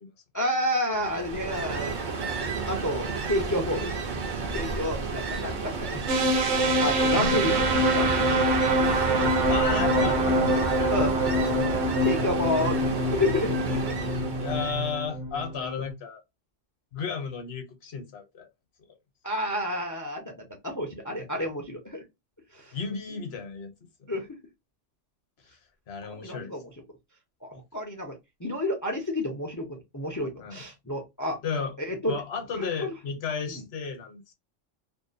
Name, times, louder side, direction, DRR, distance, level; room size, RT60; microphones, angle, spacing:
voice 1, 0.3-1.9 2.7-3.9 4.5-6.0 6.8-8.1 10.9-11.1 12.0-12.8 13.1-13.9 19.2-22.0 22.5-22.7 24.1-24.3 26.1-26.6 27.4-31.4 31.9-32.2 32.8-32.9 33.5-33.6, left 1 dB, 30° left, 0.4 m, -30 dB
Ocean, 0.9-15.0, right 4 dB, 50° right, 0.7 m, -31 dB
sound 1, 6.1-15.9, right 1 dB, 90° right, 1.1 m, -25 dB
voice 2, 7.2-7.6 9.5-10.9 14.4-16.2 16.9-18.5 21.4-21.5 22.7-23.7 25.9-26.5 30.4-30.6 31.4-31.7 32.1-34.3, left 5 dB, 65° left, 1.0 m, -33 dB
2.6 x 2.2 x 2.5 m
omnidirectional pair, 1.2 m